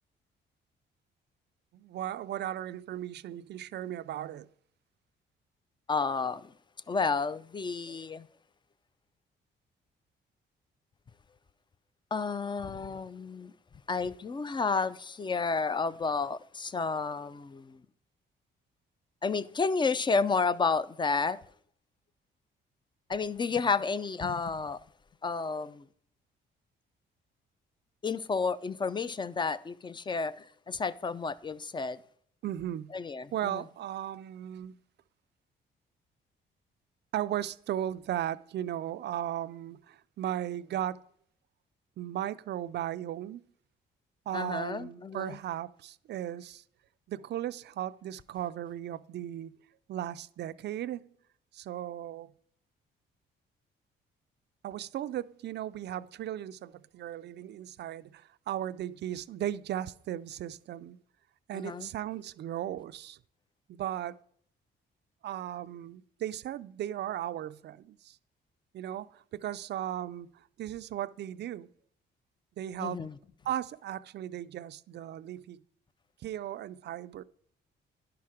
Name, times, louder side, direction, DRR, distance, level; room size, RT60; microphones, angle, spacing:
voice 1, 1.7-4.5 32.4-33.0 33.3-34.8 37.1-41.0 42.0-43.4 44.3-46.6 47.1-49.6 49.9-51.1 51.5-52.3 54.6-61.0 61.5-63.2 63.7-64.2 65.2-68.2 68.7-71.7 72.6-73.0 73.5-75.6 76.2-77.2, right 11 dB, 60° right, 0.4 m, -36 dB
voice 2, 5.9-6.5 6.9-8.3 12.1-13.5 13.9-17.8 19.2-21.4 23.1-24.8 25.2-25.9 28.0-32.0 32.9-33.6 44.3-45.4 61.5-61.9 72.8-73.1, left 4 dB, 25° left, 0.4 m, -31 dB
10.5 x 5.8 x 4.9 m
cardioid pair, 90°, 20 cm